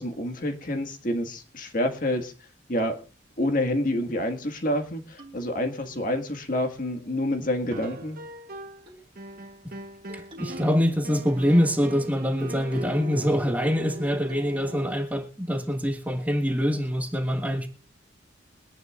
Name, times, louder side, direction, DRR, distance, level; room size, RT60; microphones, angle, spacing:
voice 1, 0.0-2.3 2.7-3.0 3.4-8.2, left 1 dB, 45° left, 1.8 m, -28 dB
sound 1, 2.8-2.9 3.4-3.6 4.0-4.1 4.4-4.8 5.2-5.9 7.0-7.6 8.0-8.3 8.9-9.1 10.1-10.7 11.0-11.7 12.0-12.1 12.5-12.7 13.1-13.2 13.7-14.0 14.3-14.7, equal, 30° right, 2.8 m, -50 dB
sound 2, 7.7-8.9 9.2-15.0, equal, 50° right, 1.2 m, -40 dB
voice 2, 10.1-17.7, equal, 10° right, 1.5 m, -25 dB
23.0 x 11.0 x 2.5 m
head